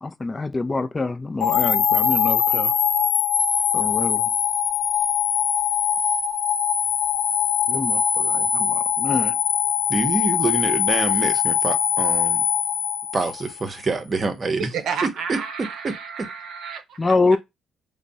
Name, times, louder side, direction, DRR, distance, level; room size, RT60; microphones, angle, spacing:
voice 1, 0.0-2.7 3.7-4.3 7.7-9.4 17.0-17.4, left 3 dB, 25° left, 0.3 m, -25 dB
sound 1, 1.4-13.6, left 8 dB, 65° left, 0.6 m, -22 dB
voice 2, 9.9-12.4 13.1-14.7 15.0-15.4 15.8-15.9 16.2-16.3, right 3 dB, 35° right, 0.7 m, -26 dB
voice 3, 14.6-17.2, right 6 dB, 75° right, 0.6 m, -31 dB
3.4 x 2.1 x 3.9 m
cardioid pair, 90°, 0 cm